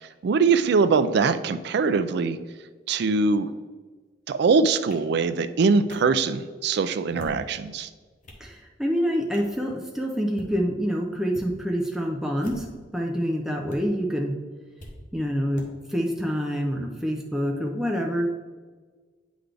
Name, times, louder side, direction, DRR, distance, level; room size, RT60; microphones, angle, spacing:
voice 1, 0.2-2.4 2.9-3.5 4.3-7.9, right 4 dB, 65° right, 11 dB, 0.4 m, -22 dB
sound 1, 4.9-5.0 5.9-6.0 7.0-7.5 8.0-8.5 9.3-9.6 10.2-10.5 11.3-11.5 12.3-12.8 13.7-13.8 14.8-14.9 15.6-15.7, left 1 dB, 45° left, 1.0 m, -43 dB
voice 2, 8.4-12.7 12.9-14.3 15.1-15.6 15.9-18.4, equal, 5° right, 0 dB, 0.5 m, -26 dB
9.3 x 3.9 x 3.3 m, 1.4 s
head